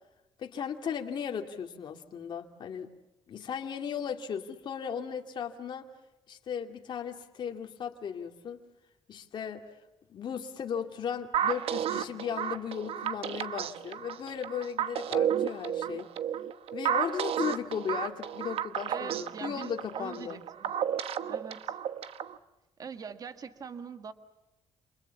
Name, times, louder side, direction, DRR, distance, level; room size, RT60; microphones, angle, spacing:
voice 1, 0.4-2.9 3.3-5.9 6.3-8.6 9.1-9.7 10.1-16.1 16.7-20.4, left 7 dB, 45° left, 4 dB, 2.3 m, -36 dB
sound 1, 11.3-22.4, right 9 dB, 60° right, 1.1 m, -32 dB
voice 2, 18.9-20.7 21.3-21.8 22.8-24.1, right 6 dB, 35° right, 10 dB, 1.6 m, -43 dB
29.0 x 28.0 x 7.2 m, 0.99 s
cardioid pair, 175°, 11 cm